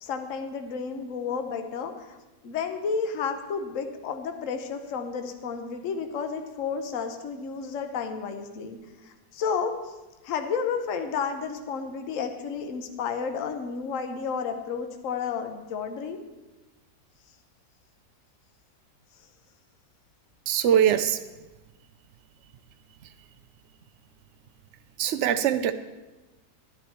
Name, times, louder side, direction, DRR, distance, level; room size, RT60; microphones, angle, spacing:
voice 1, 0.0-2.2 2.4-9.9 10.2-16.2, left 6 dB, 55° left, 6 dB, 1.2 m, -31 dB
voice 2, 20.5-21.2 25.0-25.7, right 9 dB, 75° right, 9 dB, 0.6 m, -22 dB
11.5 x 11.0 x 4.4 m, 1.1 s
omnidirectional pair, 1.9 m